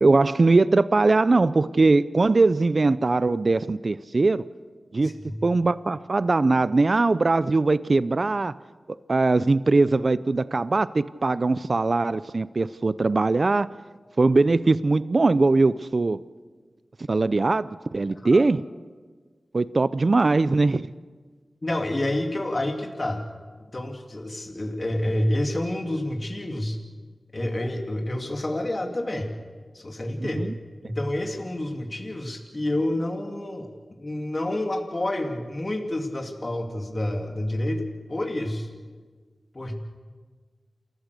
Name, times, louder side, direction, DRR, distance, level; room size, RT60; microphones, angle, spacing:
voice 1, 0.0-4.4 4.9-5.1 5.4-8.5 9.1-13.7 14.2-16.2 17.1-18.6 19.5-20.9 30.2-30.5, right 3 dB, 55° right, 16 dB, 0.5 m, -21 dB
voice 2, 5.0-5.4 18.3-18.4 21.6-23.2 23.7-26.8 27.3-29.3 29.7-30.4 30.8-33.7 34.0-37.8 38.1-38.7 39.5-39.8, left 1 dB, 40° left, 3 dB, 2.6 m, -28 dB
28.5 x 14.5 x 6.7 m, 1.4 s
cardioid pair, 40°, 0 cm